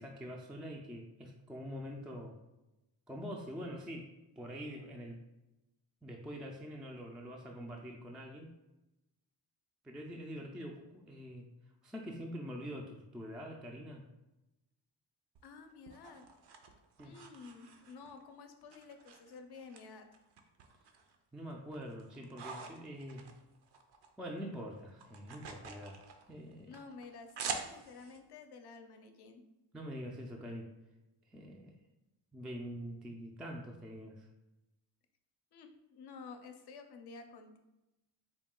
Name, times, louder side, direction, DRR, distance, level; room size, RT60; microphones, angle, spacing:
voice 1, 0.0-2.4 3.1-4.1 4.4-5.2 6.0-8.5 9.8-11.5 11.8-14.0 17.0-17.2 21.3-23.3 24.2-26.0 26.3-26.8 29.7-30.7 31.3-31.8 32.3-34.3, equal, ahead, -1 dB, 0.3 m, -45 dB
sound 1, 15.3-18.2 18.7-19.8 20.1-21.1 21.5-24.1 24.4-28.2, right 5 dB, 55° right, 0.6 m, -46 dB
voice 2, 15.4-16.3 17.0-20.1 26.7-29.4 35.5-37.6, left 4 dB, 55° left, 6 dB, 0.6 m, -51 dB
4.0 x 2.2 x 3.6 m, 0.97 s
cardioid pair, 80°, 48 cm